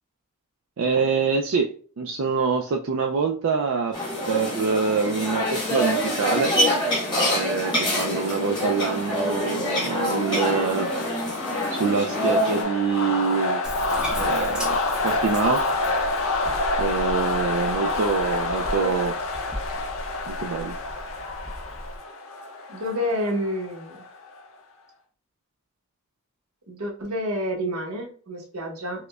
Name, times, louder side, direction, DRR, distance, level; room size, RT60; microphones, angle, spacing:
voice 1, 0.8-1.7 2.0-3.9 4.3-6.5 7.3-10.9 11.7-13.6 14.2-14.8 15.0-15.6 16.8-19.1 20.3-20.7, right 5 dB, 65° right, 2 dB, 0.3 m, -25 dB
sound 1, 3.9-12.6, equal, 20° left, 1.2 m, -25 dB
sound 2, 7.8-24.4, left 2 dB, 65° left, 0.6 m, -29 dB
voice 2, 7.8-8.2 17.6-18.1 18.7-19.0 22.7-24.1 26.7-29.1, equal, 85° right, -1 dB, 1.0 m, -30 dB
Bathtub (filling or washing), 13.6-22.0, equal, 5° right, 0.5 m, -37 dB
4.8 x 2.1 x 2.3 m, 0.43 s
head